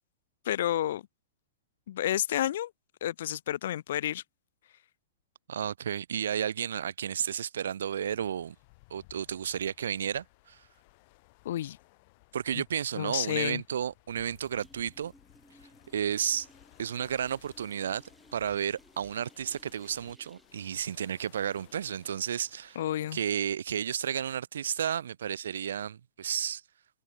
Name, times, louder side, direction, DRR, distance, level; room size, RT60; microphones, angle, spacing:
voice 1, 0.5-1.0 1.9-2.7 3.0-4.2 11.5-11.8 12.9-13.6 22.8-23.2, left 12 dB, 70° left, 0.4 m, -30 dB
voice 2, 5.5-8.5 8.9-10.6 12.3-15.1 15.9-16.5 16.8-18.0 18.3-22.8 23.1-26.6, right 9 dB, 85° right, 0.8 m, -32 dB
sound 1, 8.0-22.9, left 26 dB, 45° left, 4.5 m, -60 dB
sound 2, 13.9-14.1 14.4-23.7, right 1 dB, ahead, 6.5 m, -62 dB
hypercardioid pair, 145°, 0 cm